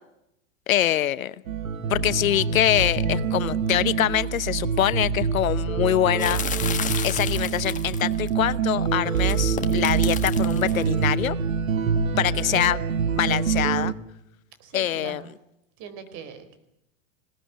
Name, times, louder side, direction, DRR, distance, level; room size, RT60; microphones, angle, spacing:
voice 1, 0.7-1.3 1.9-6.4 7.0-11.4 12.2-12.8 13.2-13.9 14.7-15.2, left 11 dB, 90° left, 17 dB, 1.0 m, -24 dB
sound 1, 1.5-13.9, right 6 dB, 90° right, 2.0 m, -25 dB
sound 2, 6.2-8.3 9.1-10.8, left 8 dB, 20° left, 1.6 m, -32 dB
voice 2, 12.1-12.5 14.6-15.3 15.8-16.6, right 5 dB, 45° right, 10 dB, 4.4 m, -41 dB
21.0 x 18.0 x 9.2 m, 0.83 s
hypercardioid pair, 130°, 40 cm